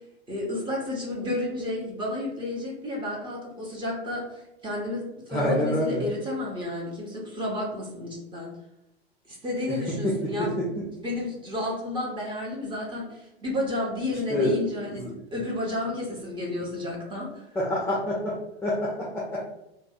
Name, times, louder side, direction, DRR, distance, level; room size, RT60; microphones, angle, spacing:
voice 1, 0.3-8.5 9.3-10.6 11.0-17.6, left 1 dB, 15° right, -2 dB, 0.8 m, -31 dB
voice 2, 5.3-6.1 9.7-9.8 10.0-10.7 14.3-15.1 17.6-18.3 18.6-19.4, left 1 dB, 10° left, -5 dB, 0.5 m, -27 dB
2.5 x 2.1 x 3.7 m, 0.86 s
figure-of-eight pair, 95°, 32 cm